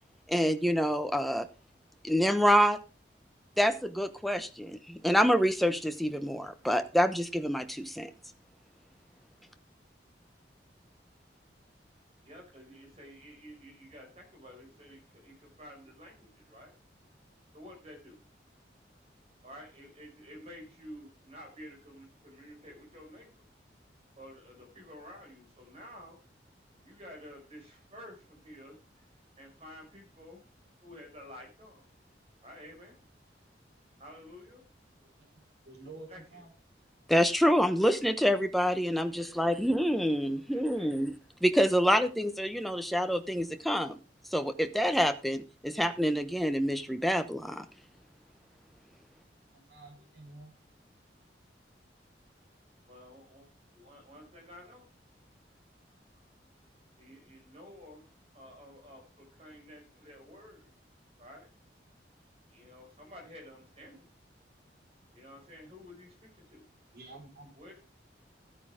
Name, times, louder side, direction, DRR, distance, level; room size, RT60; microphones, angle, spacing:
voice 1, 0.3-1.5 2.0-2.8 3.6-8.1 37.1-41.1 41.4-44.0 44.3-47.7, equal, ahead, 8 dB, 0.9 m, -27 dB
voice 2, 12.2-16.7 17.5-18.2 19.4-23.3 24.2-26.2 26.8-29.0 29.4-30.4 30.8-31.8 32.4-32.9 34.0-34.6 36.1-36.4 39.1-39.6 40.5-41.1 52.9-53.5 53.7-54.8 57.0-58.1 58.3-60.7 61.2-61.5 62.5-64.1 65.1-66.7 67.6-67.8, equal, 35° right, 1 dB, 5.8 m, -51 dB
voice 3, 35.6-36.5 49.5-50.5 66.9-67.5, right 2 dB, 60° right, 0 dB, 4.5 m, -49 dB
13.5 x 9.4 x 3.7 m, 0.30 s
head